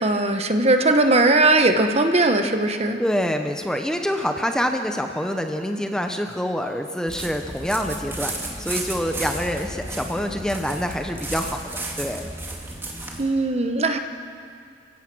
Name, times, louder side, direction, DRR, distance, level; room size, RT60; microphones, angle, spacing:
voice 1, 0.0-3.0 13.2-14.0, right 2 dB, 35° right, 6 dB, 1.1 m, -19 dB
voice 2, 3.0-12.3, equal, 5° left, 5 dB, 0.8 m, -26 dB
sound 1, 7.1-13.2, right 2 dB, 15° right, 2.3 m, -33 dB
29.5 x 16.5 x 6.2 m, 2.3 s
head